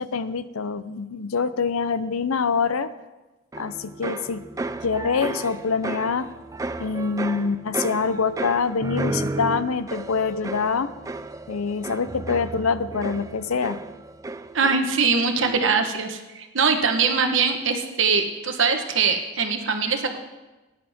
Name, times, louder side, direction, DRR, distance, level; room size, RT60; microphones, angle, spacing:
voice 1, 0.0-2.9 3.5-4.4 4.8-6.3 6.8-10.9 11.5-13.8, left 5 dB, 90° left, 14 dB, 0.6 m, -25 dB
sound 1, 3.5-15.1 15.4-15.9, right 2 dB, 15° right, 0.3 m, -33 dB
voice 2, 14.5-20.2, right 5 dB, 65° right, 5 dB, 1.2 m, -22 dB
18.5 x 10.0 x 3.6 m, 1.1 s
head